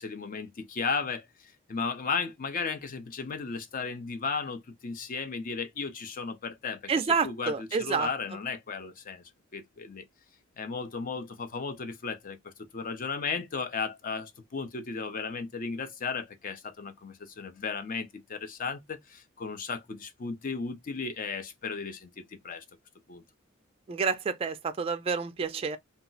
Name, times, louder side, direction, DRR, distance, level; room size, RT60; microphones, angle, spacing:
voice 1, 0.0-10.1 10.6-22.6 23.1-23.2, left 5 dB, 40° left, 0.5 m, -35 dB
voice 2, 6.9-8.1 23.9-25.8, right 5 dB, 30° right, 0.3 m, -28 dB
2.3 x 2.0 x 3.7 m
head